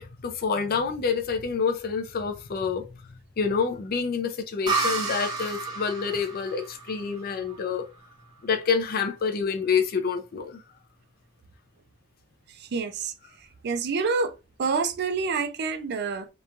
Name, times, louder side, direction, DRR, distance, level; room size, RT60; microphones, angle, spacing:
voice 1, 0.0-7.9 8.4-10.6, left 5 dB, 45° left, 0.4 m, -28 dB
sound 1, 4.7-8.2, right 4 dB, 20° right, 0.8 m, -31 dB
voice 2, 12.6-13.1 13.6-14.3 14.6-16.3, right 4 dB, 55° right, 0.4 m, -27 dB
3.0 x 2.2 x 2.4 m
head